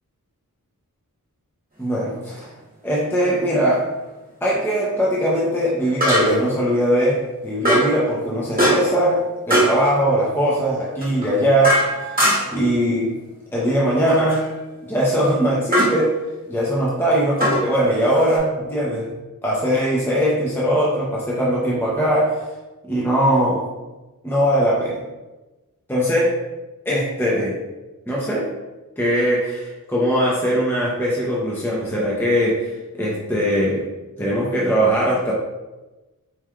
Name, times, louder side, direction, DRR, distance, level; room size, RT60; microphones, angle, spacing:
voice 1, 1.8-2.5 2.8-3.9 4.4-12.2 12.5-13.1 13.5-14.4 14.9-16.1 16.5-19.1 19.4-22.5 22.8-23.6 24.2-25.0 25.9-26.4 26.9-27.6 28.1-28.5 29.0-33.8 34.2-35.3, equal, 5° left, -5 dB, 0.7 m, -20 dB
sound 1, 2.3-2.4 6.0-6.5 7.6-8.0 8.6-9.0 9.5-9.8 11.0-12.6 14.1-14.4 15.7-16.0 17.4-18.4, equal, 25° right, 1.5 m, -20 dB
4.4 x 3.2 x 2.4 m, 1.1 s
wide cardioid pair, 90°, 34 cm